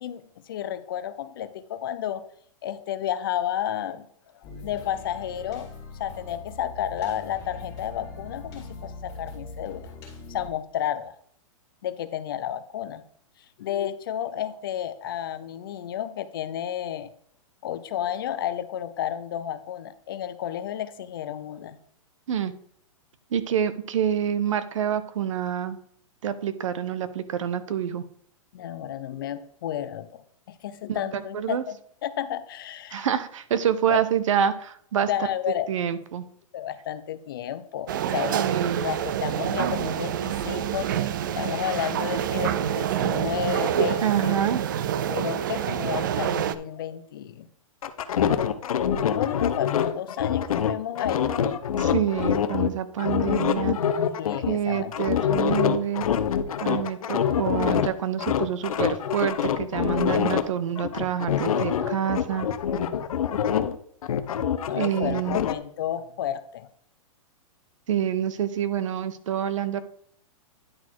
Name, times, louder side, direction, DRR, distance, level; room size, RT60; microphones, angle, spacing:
voice 1, 0.0-2.2 2.6-4.1 4.6-5.7 6.0-9.9 10.3-11.1 11.8-13.0 13.6-17.1 17.6-21.8 28.5-30.2 30.5-31.8 32.0-33.1 33.9-34.0 35.1-35.7 36.5-38.4 38.8-41.1 41.4-44.4 45.1-47.5 48.8-51.3 54.2-54.9 64.7-66.7, left 10 dB, 40° left, 12 dB, 0.5 m, -31 dB
sound 1, 4.4-10.5, left 3 dB, 20° left, 2.0 m, -41 dB
voice 2, 23.3-25.8 26.2-28.0 30.9-31.6 32.9-35.1 35.7-36.2 38.3-38.8 44.0-44.6 51.8-53.8 54.5-56.1 56.6-62.5 64.7-65.4 67.9-69.8, right 9 dB, 65° right, 13 dB, 0.8 m, -27 dB
sound 2, 37.9-46.6, right 10 dB, 35° right, 0.4 m, -27 dB
sound 3, 47.8-52.7 53.0-57.9 58.2-60.4 60.8-63.8 64.0-65.5, left 8 dB, 85° left, 0.8 m, -25 dB
10.0 x 4.1 x 4.6 m, 0.63 s
hypercardioid pair, 170°, 18 cm